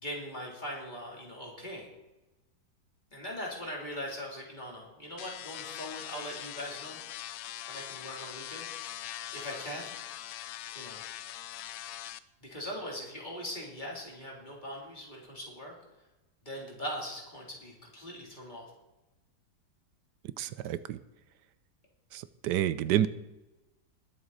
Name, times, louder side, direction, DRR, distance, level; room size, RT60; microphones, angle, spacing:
voice 1, 0.0-1.9 3.1-7.0 7.6-8.7 9.3-9.8 10.7-11.0 12.4-15.7 16.4-18.6, equal, 25° left, -3 dB, 3.4 m, -40 dB
sound 1, 5.2-12.2, left 12 dB, 70° left, 1.0 m, -42 dB
voice 2, 20.4-21.0 22.1-23.1, right 11 dB, 85° right, 15 dB, 1.2 m, -29 dB
20.5 x 7.9 x 4.1 m, 1.0 s
omnidirectional pair, 1.8 m